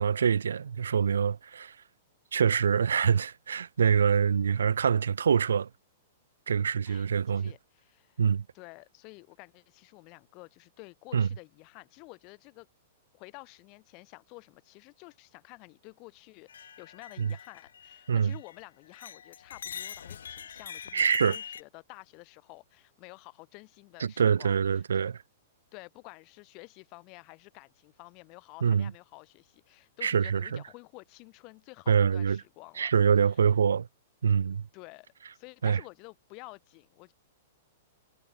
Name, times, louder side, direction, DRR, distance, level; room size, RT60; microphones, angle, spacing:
voice 1, 0.0-1.7 2.3-5.7 6.5-7.5 8.2-8.4 11.1-11.3 17.2-17.3 18.1-18.3 20.9-21.4 24.0-25.2 28.6-28.9 30.0-30.6 31.9-32.4 32.8-33.9 34.2-34.6 35.6-35.8, right 7 dB, 80° right, 0.5 m, -25 dB
voice 2, 6.8-8.2 8.5-12.7 13.1-25.1 25.7-32.9 33.3-33.4 34.7-35.1 35.3-37.1, left 28 dB, 40° left, 3.8 m, -51 dB
sound 1, 16.5-18.6 18.9-21.6, left 8 dB, 75° left, 6.2 m, -43 dB
hypercardioid pair, 115°, 0 cm